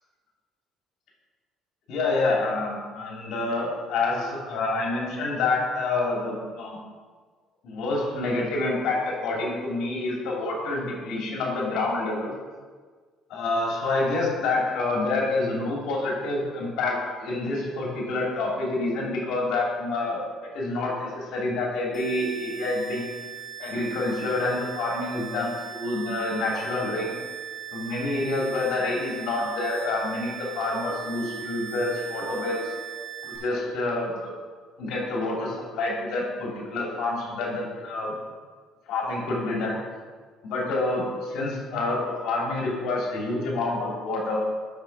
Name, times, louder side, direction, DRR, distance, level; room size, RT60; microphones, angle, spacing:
voice 1, 1.9-6.8 7.6-12.3 13.3-20.2 20.5-23.1 23.6-27.2 27.7-32.7 33.2-34.3 34.8-38.2 38.9-39.8 40.4-44.4, left 2 dB, 75° left, -3 dB, 3.0 m, -27 dB
sound 1, 21.9-33.4, right 10 dB, 15° left, 2.8 m, -39 dB
8.1 x 6.9 x 5.7 m, 1.5 s
cardioid pair, 115°, 0 cm